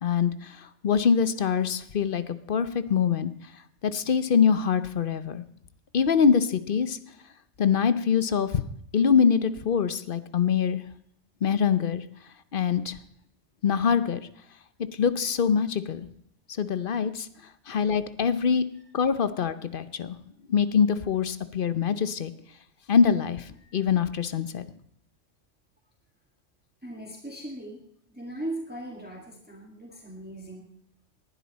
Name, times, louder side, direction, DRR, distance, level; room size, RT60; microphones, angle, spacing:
voice 1, 0.0-3.3 3.8-5.4 5.9-7.0 7.6-8.6 8.9-10.8 11.4-12.0 12.5-13.0 13.6-14.2 15.0-16.0 16.6-17.3 17.7-18.6 18.9-20.2 20.5-22.3 22.9-24.7, left 7 dB, 50° left, 13 dB, 0.9 m, -24 dB
voice 2, 26.8-27.8 28.1-30.6, right 1 dB, 10° right, 1 dB, 1.8 m, -38 dB
19.0 x 11.5 x 4.1 m, 0.71 s
omnidirectional pair, 1.2 m